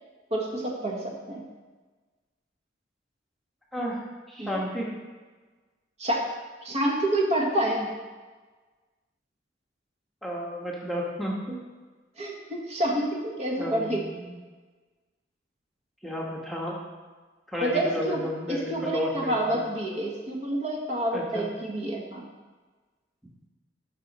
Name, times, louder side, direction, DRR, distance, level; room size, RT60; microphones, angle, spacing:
voice 1, 0.3-1.4 4.4-4.7 6.0-6.2 6.6-7.9 12.2-14.0 17.6-18.2 18.5-22.2, right 1 dB, 35° right, -1 dB, 1.4 m, -28 dB
voice 2, 3.7-4.9 10.2-11.6 13.6-14.3 16.0-16.8 17.5-19.6 21.1-21.5, equal, ahead, -4 dB, 1.2 m, -32 dB
11.5 x 5.4 x 4.1 m, 1.3 s
head